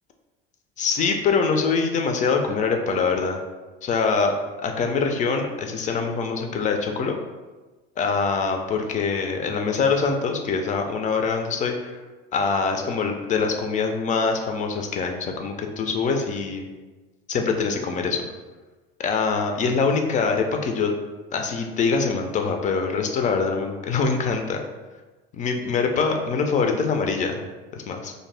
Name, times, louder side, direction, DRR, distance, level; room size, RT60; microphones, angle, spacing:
voice 1, 0.8-3.4 3.8-4.4 4.6-7.2 8.0-12.0 12.3-16.7 17.3-18.3 19.0-20.9 21.3-24.6 25.4-27.4 27.7-28.1, left 5 dB, 25° left, 4 dB, 0.3 m, -24 dB
2.6 x 2.0 x 3.2 m, 1.3 s
hypercardioid pair, 80°, 30 cm